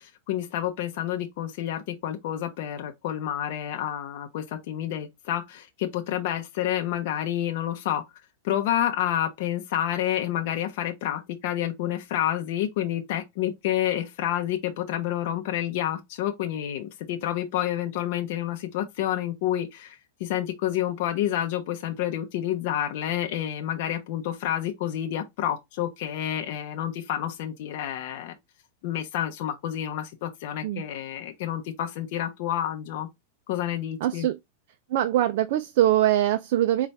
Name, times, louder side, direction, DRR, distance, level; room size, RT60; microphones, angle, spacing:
voice 1, 0.0-8.0 8.4-28.4 28.8-33.1 33.5-34.3, left 11 dB, 50° left, 0.6 m, -29 dB
voice 2, 34.0-34.4 34.9-36.9, right 12 dB, 50° right, 0.3 m, -22 dB
4.1 x 2.3 x 3.3 m
supercardioid pair, 165°, 0 cm